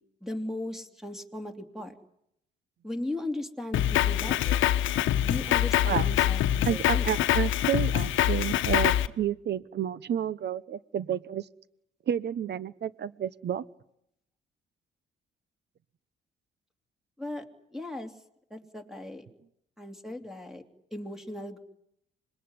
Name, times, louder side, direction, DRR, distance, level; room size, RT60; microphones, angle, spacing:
voice 1, 0.2-1.9 2.8-4.7 5.2-7.1 17.2-17.4 17.7-18.1 18.5-19.2 19.8-20.6 20.9-21.6, left 1 dB, ahead, 6 dB, 3.0 m, -37 dB
Drum kit, 3.7-9.1, left 12 dB, 80° left, 1.1 m, -25 dB
voice 2, 6.6-11.5 12.1-13.6, right 9 dB, 60° right, 18 dB, 1.1 m, -30 dB
26.0 x 21.0 x 9.8 m, 0.78 s
cardioid pair, 90°, 20 cm